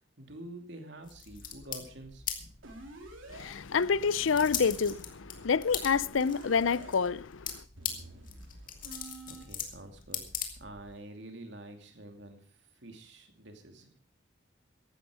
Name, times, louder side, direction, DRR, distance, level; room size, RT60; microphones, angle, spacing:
voice 1, 0.2-2.2 9.3-10.2 10.6-12.4 12.8-13.9, right 1 dB, 65° right, 2.7 m, -47 dB
sound 1, 1.0-11.0, left 8 dB, 45° left, 2.1 m, -41 dB
sound 2, 2.6-3.5 4.3-6.9 7.8-9.4, right 2 dB, 90° right, 4.3 m, -49 dB
voice 2, 3.3-7.6, left 5 dB, 85° left, 0.6 m, -28 dB
15.0 x 12.0 x 5.0 m
head